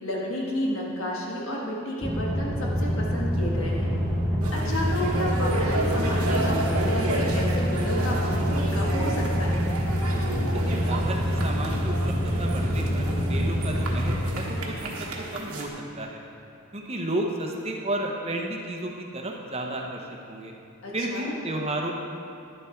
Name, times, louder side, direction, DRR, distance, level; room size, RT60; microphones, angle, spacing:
voice 1, 0.0-4.0 4.5-9.7 20.8-21.3, left 1 dB, 60° left, -3 dB, 1.6 m, -31 dB
sound 1, 2.0-14.1, equal, ahead, 1.1 m, -26 dB
sound 2, 4.4-15.7, right 2 dB, 80° right, 1.3 m, -32 dB
voice 2, 10.5-16.2 16.7-20.5 20.9-21.9, right 1 dB, 25° right, 1 dB, 0.8 m, -32 dB
11.0 x 7.0 x 4.5 m, 2.7 s
head